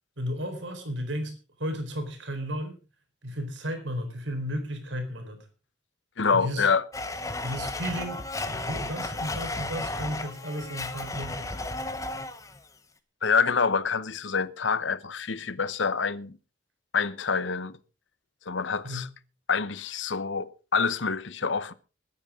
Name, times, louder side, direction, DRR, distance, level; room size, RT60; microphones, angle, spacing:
voice 1, 0.2-2.8 3.2-5.4 6.3-6.7 7.4-11.5 18.8-19.1, equal, 80° right, 4.2 m, -34 dB
voice 2, 6.2-6.8 13.2-16.4 16.9-17.8 18.5-19.1 19.5-21.7, left 5 dB, 85° left, 0.9 m, -26 dB
Domestic sounds home sounds, 6.9-12.6, left 2 dB, 15° left, 1.1 m, -34 dB
21.5 x 9.8 x 3.7 m
head